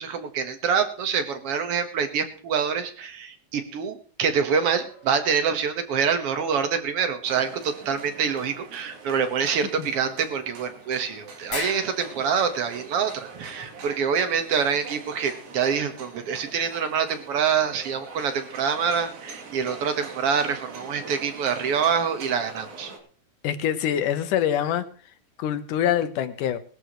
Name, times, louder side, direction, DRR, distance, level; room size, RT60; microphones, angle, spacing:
voice 1, 0.0-22.9, right 6 dB, 55° right, 8 dB, 1.9 m, -26 dB
sound 1, 4.5-5.8 10.4-10.5 10.8-10.9 11.5-12.4, left 3 dB, 40° left, 2.6 m, -38 dB
sound 2, 7.2-23.0, right 4 dB, 85° right, 4.6 m, -43 dB
voice 2, 23.4-24.8 25.4-26.6, left 10 dB, 70° left, 10 dB, 2.4 m, -24 dB
20.5 x 13.0 x 3.1 m, 0.41 s
omnidirectional pair, 4.1 m